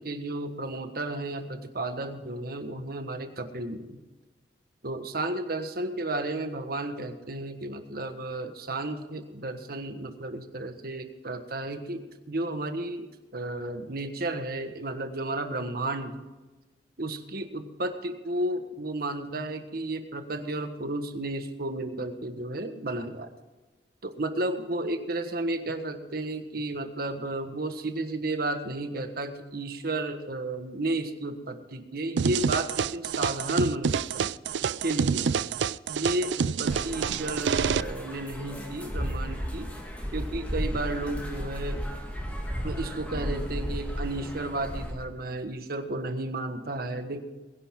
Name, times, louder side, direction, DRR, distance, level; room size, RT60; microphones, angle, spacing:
voice 1, 0.0-4.0 4.8-13.1 13.3-16.2 17.0-23.3 24.0-34.3 34.8-35.5 35.9-39.7 40.1-41.8 42.6-47.2, right 2 dB, 55° right, 7 dB, 1.4 m, -33 dB
sound 1, 32.2-37.8, right 6 dB, 80° right, 0.4 m, -27 dB
sound 2, 36.7-44.9, equal, 10° left, 2.5 m, -34 dB
21.5 x 10.5 x 3.7 m, 1.2 s
head